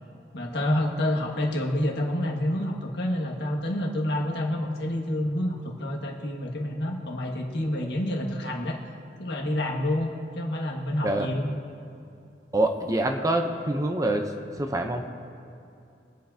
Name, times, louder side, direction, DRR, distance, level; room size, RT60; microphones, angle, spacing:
voice 1, 0.3-8.8 9.2-11.5, left 1 dB, 70° left, 0 dB, 1.7 m, -28 dB
voice 2, 12.5-15.1, right 1 dB, 20° right, 4 dB, 0.7 m, -26 dB
24.0 x 8.4 x 2.8 m, 2.6 s
head